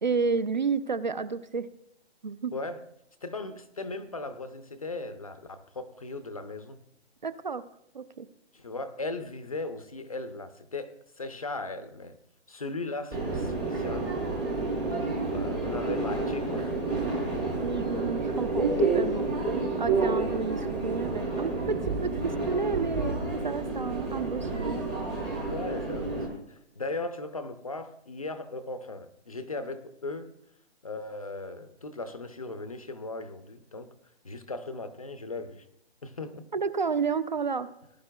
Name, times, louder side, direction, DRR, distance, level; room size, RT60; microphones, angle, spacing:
voice 1, 0.0-1.7 2.2-2.5 7.2-7.6 7.9-8.3 17.6-19.3 19.8-24.8 36.5-37.7, right 5 dB, 45° right, 0.5 m, -31 dB
voice 2, 2.5-2.8 3.2-6.8 8.5-12.2 12.5-14.2 15.3-17.3 20.1-20.5 25.4-30.3 30.8-33.9 34.2-35.7 36.0-36.4, left 3 dB, 30° left, 0.6 m, -38 dB
Subway metro underground, 13.1-26.3, right 3 dB, 5° right, 0.7 m, -29 dB
19.5 x 11.0 x 2.2 m
hypercardioid pair, 175°, 34 cm